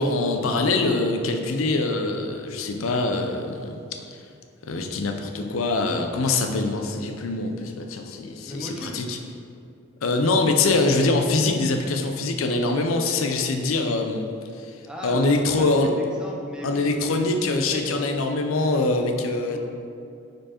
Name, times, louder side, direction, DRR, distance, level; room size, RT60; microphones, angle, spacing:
voice 1, 0.0-3.8 4.6-9.2 10.0-14.3 15.0-15.9 16.6-19.6, left 3 dB, 85° left, 5 dB, 0.5 m, -23 dB
voice 2, 8.4-9.0 14.9-18.0 19.5-19.6, equal, 5° right, -2 dB, 0.6 m, -37 dB
5.1 x 4.6 x 4.2 m, 2.5 s
head